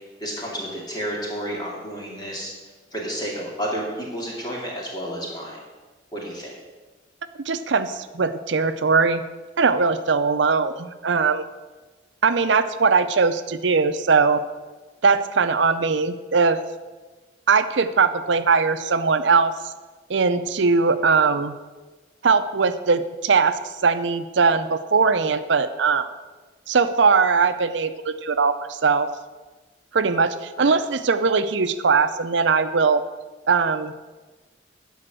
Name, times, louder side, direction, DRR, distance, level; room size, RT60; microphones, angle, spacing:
voice 1, 0.2-2.5 2.9-5.6 6.1-6.5 30.6-30.7, equal, 20° left, -3 dB, 2.3 m, -31 dB
voice 2, 7.4-9.2 9.6-11.5 12.2-14.4 15.0-16.6 17.5-19.5 20.1-21.6 22.2-26.1 26.7-29.1 29.9-33.0 33.5-33.9, right 4 dB, 65° right, 11 dB, 0.6 m, -20 dB
12.0 x 5.1 x 7.7 m, 1.3 s
head